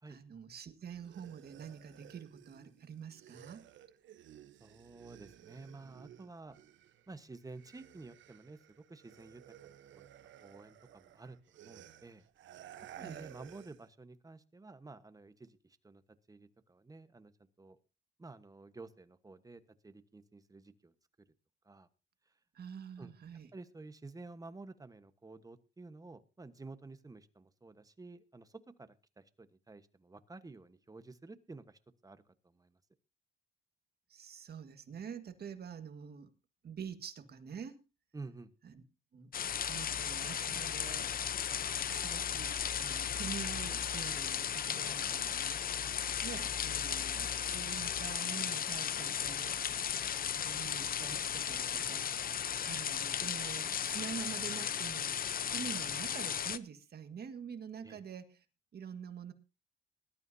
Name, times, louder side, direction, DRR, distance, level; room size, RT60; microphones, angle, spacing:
voice 1, 0.1-3.7 13.0-13.3 22.5-23.5 34.1-36.3 36.6-37.8 38.6-38.8 39.1-39.3 39.6-41.1 41.9-45.8 46.2-49.6 50.3-52.2 52.7-55.1 55.5-58.4 58.7-59.3, right 7 dB, 55° right, 1.7 m, -46 dB
sound 1, 0.9-7.1 7.4-13.9, right 11 dB, 70° right, 1.0 m, -55 dB
voice 2, 4.6-6.6 7.1-8.6 8.9-10.1 10.4-12.2 13.0-16.0 16.3-17.8 18.2-20.9 21.6-21.9 23.0-23.1 23.5-32.8 38.1-38.5 52.5-52.8 57.8-58.0, right 3 dB, 20° right, 1.2 m, -51 dB
sound 2, 39.3-56.6, left 8 dB, 45° left, 0.7 m, -35 dB
20.0 x 12.5 x 2.8 m
cardioid pair, 90°, 20 cm